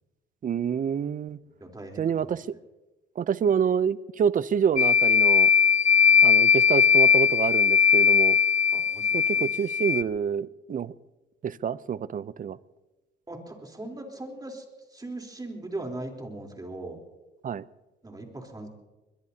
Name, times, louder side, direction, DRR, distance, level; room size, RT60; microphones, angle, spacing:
voice 1, 0.4-1.4 2.0-2.5 3.2-5.5 6.2-8.4 9.1-10.9 11.4-12.6 17.4-17.6, right 7 dB, 40° right, 0.6 m, -27 dB
voice 2, 1.6-2.3 6.0-6.2 8.7-9.5 13.3-14.6 14.9-17.0 18.0-18.7, right 2 dB, 20° right, 3.7 m, -39 dB
sound 1, 4.8-10.0, left 6 dB, 35° left, 0.5 m, -19 dB
22.5 x 22.0 x 2.8 m
cardioid pair, 90°, 20 cm